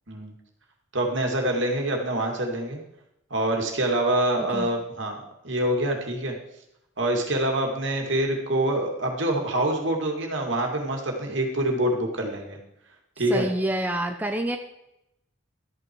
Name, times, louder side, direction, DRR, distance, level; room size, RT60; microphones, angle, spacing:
voice 1, 0.9-2.8 3.3-6.3 7.0-12.6 13.2-13.4, right 1 dB, 65° right, 1 dB, 2.3 m, -26 dB
voice 2, 4.4-4.7 13.3-14.6, right 1 dB, 10° right, 5 dB, 0.7 m, -27 dB
13.0 x 9.1 x 4.7 m, 0.84 s
head